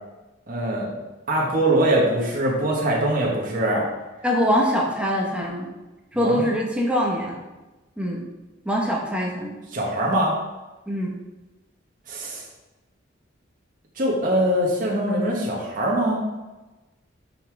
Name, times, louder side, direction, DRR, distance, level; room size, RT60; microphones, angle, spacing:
voice 1, 0.5-0.9 1.3-3.8 6.2-6.5 9.7-10.4 12.1-12.4 14.0-16.2, right 1 dB, 45° right, -3 dB, 1.5 m, -22 dB
voice 2, 4.2-5.7 6.1-7.4 8.0-8.3 8.6-9.6 10.9-11.1, equal, 5° right, -1 dB, 1.1 m, -23 dB
5.8 x 5.7 x 4.7 m, 1.1 s
head